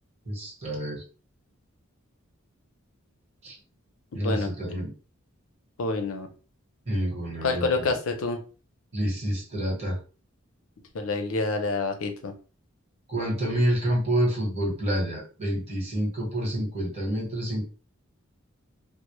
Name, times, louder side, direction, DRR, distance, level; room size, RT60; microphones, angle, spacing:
voice 1, 0.3-1.0 3.4-3.6 4.1-4.9 6.9-7.9 8.9-10.0 13.1-17.6, right 1 dB, 30° right, -2 dB, 1.0 m, -28 dB
voice 2, 4.1-4.5 5.8-6.3 7.4-8.4 10.9-12.3, left 3 dB, 80° left, 6 dB, 0.5 m, -27 dB
2.0 x 2.0 x 3.0 m, 0.36 s
head